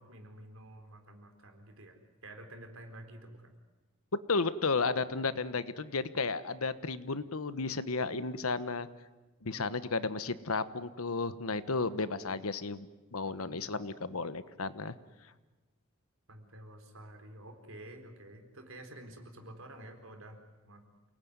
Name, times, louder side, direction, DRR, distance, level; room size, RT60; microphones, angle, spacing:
voice 1, 0.0-3.5 9.5-9.7 13.5-13.6 14.1-14.2 16.3-20.4 20.6-20.9, right 1 dB, 75° right, 5 dB, 4.2 m, -50 dB
voice 2, 4.3-8.9 9.4-15.0, left 4 dB, 90° left, 13 dB, 1.2 m, -33 dB
28.5 x 19.5 x 9.6 m, 1.2 s
head